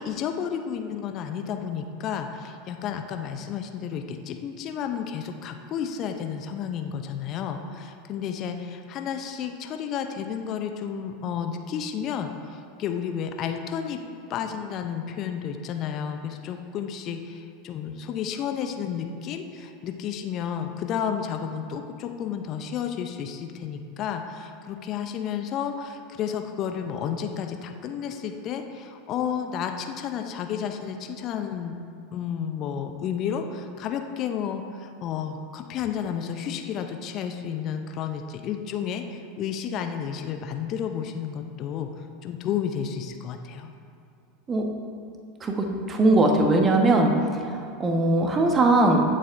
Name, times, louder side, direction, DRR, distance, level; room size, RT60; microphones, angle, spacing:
voice 1, 0.0-14.0 14.3-31.8 32.1-43.7, left 8 dB, 40° left, 6 dB, 0.6 m, -31 dB
voice 2, 45.4-47.1 47.8-49.0, right 2 dB, 25° right, 2 dB, 1.2 m, -20 dB
15.0 x 7.5 x 2.6 m, 2.5 s
figure-of-eight pair, 80°, 0 cm